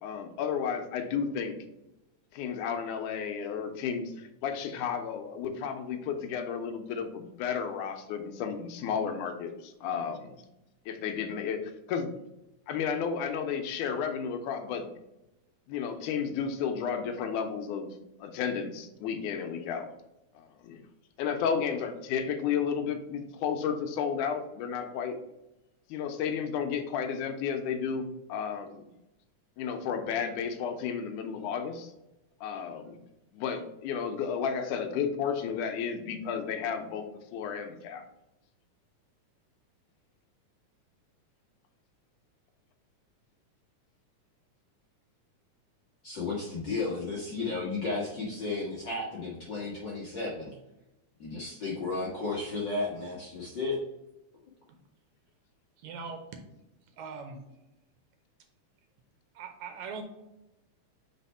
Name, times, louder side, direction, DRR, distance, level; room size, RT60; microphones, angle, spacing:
voice 1, 0.0-1.6 2.3-10.4 10.9-11.6 11.9-12.1 12.7-14.9 15.7-17.9 18.2-19.9 20.4-20.8 21.2-25.2 25.9-28.9 29.6-31.9 32.4-32.9 33.3-37.0 37.3-38.0, left 7 dB, 80° left, 6 dB, 2.1 m, -32 dB
voice 2, 46.0-50.5 51.2-53.8, left 3 dB, 55° left, -5 dB, 1.2 m, -33 dB
voice 3, 55.8-56.4 56.9-57.4 59.3-60.0, right 5 dB, 75° right, 5 dB, 1.8 m, -41 dB
4.4 x 4.1 x 5.4 m, 0.93 s
omnidirectional pair, 3.6 m